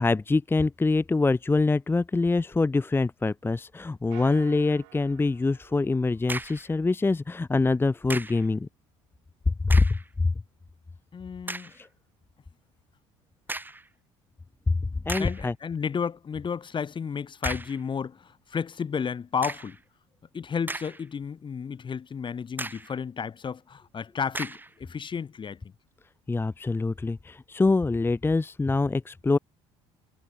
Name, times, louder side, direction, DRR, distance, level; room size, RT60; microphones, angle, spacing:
voice 1, 0.0-8.7 9.5-10.3 11.7-11.9 14.7-14.8 15.1-15.5 26.3-29.4, left 3 dB, 15° left, 0.7 m, -24 dB
sound 1, 4.1-6.8, right 39 dB, 75° right, 6.8 m, -50 dB
sound 2, 6.3-6.7 8.1-8.5 9.6-10.1 10.7-10.8 11.5-11.8 13.5-13.9 14.6-14.7 15.1-15.5 17.4-17.8 19.4-19.8 20.4-21.2 21.6-21.7 22.6-23.0 24.3-24.7, right 2 dB, 15° right, 2.0 m, -36 dB
voice 2, 11.1-11.7 15.2-19.8 20.3-25.7, left 6 dB, 35° left, 1.2 m, -32 dB
hypercardioid pair, 65°, 15 cm